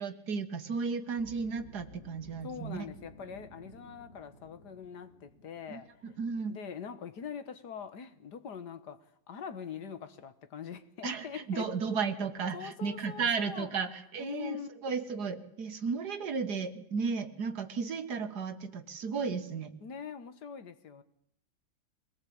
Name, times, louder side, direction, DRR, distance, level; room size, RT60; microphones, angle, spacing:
voice 1, 0.0-2.9 5.7-6.6 11.0-19.8, right 5 dB, 60° right, 2.0 m, -34 dB
sound 1, 1.2-7.4, left 2 dB, 35° left, 2.7 m, -55 dB
voice 2, 2.4-5.9 6.5-11.7 12.5-13.7 14.2-14.7 19.8-21.0, left 7 dB, 65° left, 1.9 m, -43 dB
23.5 x 18.5 x 8.6 m
omnidirectional pair, 2.0 m